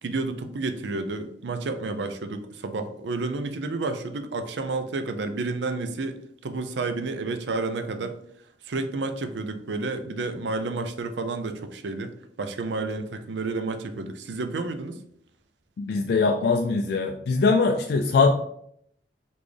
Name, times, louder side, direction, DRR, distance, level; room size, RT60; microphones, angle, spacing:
voice 1, 0.0-8.2 8.6-12.1 12.4-15.0, right 3 dB, 75° right, 8 dB, 0.5 m, -30 dB
voice 2, 15.8-18.3, left 4 dB, 65° left, 4 dB, 0.3 m, -22 dB
4.1 x 3.4 x 3.2 m, 0.70 s
head